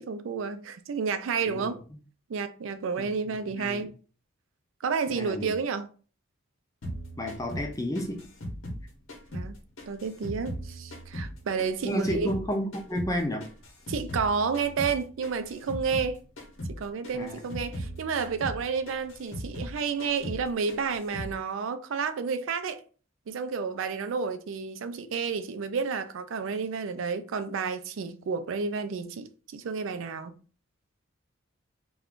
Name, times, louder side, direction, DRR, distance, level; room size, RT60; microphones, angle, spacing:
voice 1, 0.0-1.8 2.3-3.9 4.8-5.9 9.3-9.6 9.9-12.3 13.9-16.2 16.7-22.8 23.3-30.3, right 5 dB, 65° right, 0.4 m, -31 dB
voice 2, 3.0-3.9 5.1-5.5 7.2-8.2 11.8-13.5 17.1-17.4, equal, 15° left, 0.5 m, -32 dB
sound 1, 6.8-9.5 9.8-12.5 12.7-16.1 16.4-16.8 17.0-19.7 20.0-20.4 20.7-21.3, equal, 65° left, 0.8 m, -38 dB
2.4 x 2.3 x 3.5 m
head